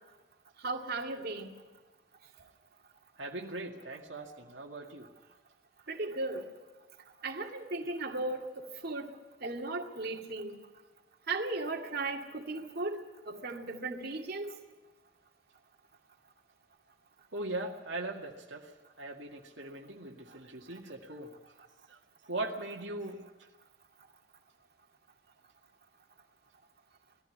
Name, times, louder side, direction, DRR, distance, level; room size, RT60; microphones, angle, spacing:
voice 1, 0.6-1.5 5.9-6.4 7.2-9.1 9.4-10.6 11.3-13.0 13.3-14.5, right 2 dB, 55° right, 1 dB, 2.3 m, -36 dB
voice 2, 3.2-5.1 17.3-18.7 19.0-21.3 21.9-22.0 22.3-23.2, right 2 dB, 80° right, 0 dB, 2.1 m, -40 dB
20.0 x 15.0 x 9.8 m, 1.2 s
head